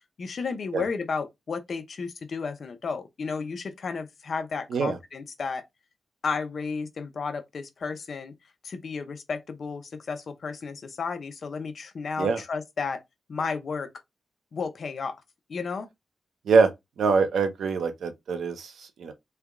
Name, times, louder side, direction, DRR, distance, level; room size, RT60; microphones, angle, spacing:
voice 1, 0.2-5.6 6.2-8.3 8.6-13.0 13.3-13.9 14.5-15.2 15.5-15.9, left 5 dB, 50° left, 0.6 m, -33 dB
voice 2, 17.0-19.1, right 4 dB, 85° right, 0.7 m, -24 dB
3.3 x 2.2 x 3.6 m
wide cardioid pair, 140°, 0 cm